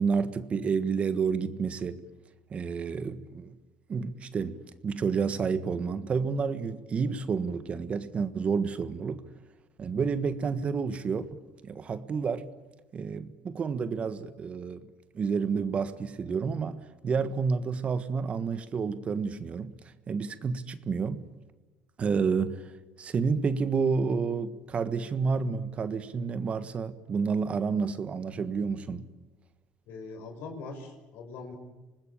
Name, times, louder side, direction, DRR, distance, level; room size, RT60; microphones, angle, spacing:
voice 1, 0.0-2.0 2.5-3.6 3.9-9.2 9.8-12.5 12.9-14.9 15.1-19.7 20.1-21.3 22.0-22.7 23.0-29.1, right 5 dB, 35° right, 12 dB, 1.5 m, -30 dB
voice 2, 29.9-31.5, left 3 dB, 70° left, 6 dB, 5.7 m, -42 dB
25.5 x 20.0 x 8.8 m, 1.1 s
supercardioid pair, 105°, 4 cm